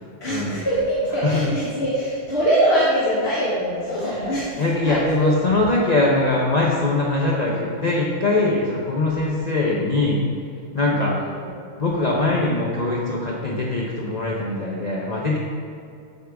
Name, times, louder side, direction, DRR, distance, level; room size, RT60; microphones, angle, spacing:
voice 1, 0.2-5.3 11.1-11.5, right 1 dB, 60° left, -7 dB, 1.8 m, -23 dB
voice 2, 4.0-10.2 10.7-11.2 11.8-15.4, left 2 dB, 40° left, -3 dB, 0.8 m, -22 dB
13.5 x 5.0 x 3.5 m, 2.5 s
omnidirectional pair, 1.3 m